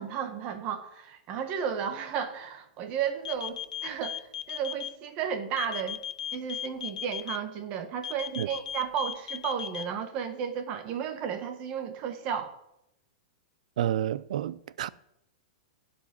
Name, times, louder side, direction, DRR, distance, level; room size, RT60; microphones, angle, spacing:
voice 1, 0.0-6.0 6.3-12.5, right 8 dB, 30° right, 1.4 m, -33 dB
sound 1, 3.2-4.9 5.6-7.4 8.0-9.8, left 10 dB, 85° left, 0.7 m, -36 dB
voice 2, 13.8-14.9, right 11 dB, 70° right, 0.5 m, -29 dB
15.5 x 5.3 x 5.4 m
supercardioid pair, 160°, 4 cm